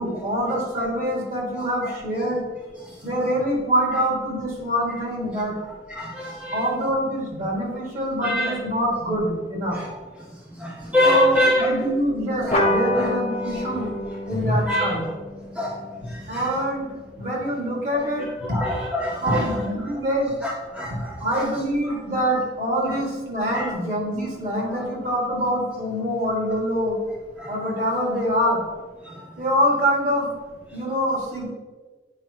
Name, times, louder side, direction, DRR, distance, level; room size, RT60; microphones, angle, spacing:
voice 1, 0.0-2.4 3.0-5.6 6.5-9.8 11.0-13.9 14.3-15.0 16.3-16.9 17.2-18.6 19.2-20.3 20.9-27.0 27.5-28.6 29.4-30.3 30.7-31.5, equal, 45° right, -4 dB, 2.1 m, -25 dB
voice 2, 5.9-6.7 8.2-8.5 9.7-10.0 10.5-11.7 12.4-12.6 12.9-13.1 13.6-13.7 14.5-14.9 15.5-16.5 18.2-19.9 20.4-21.5 21.8-22.0 23.5-23.7 24.7-24.9 27.4-27.5 29.0-29.3, left 1 dB, 5° right, -3 dB, 0.5 m, -26 dB
sound 1, 12.5-17.4, left 1 dB, 35° left, 0.9 m, -28 dB
8.8 x 4.7 x 3.0 m, 1.4 s
head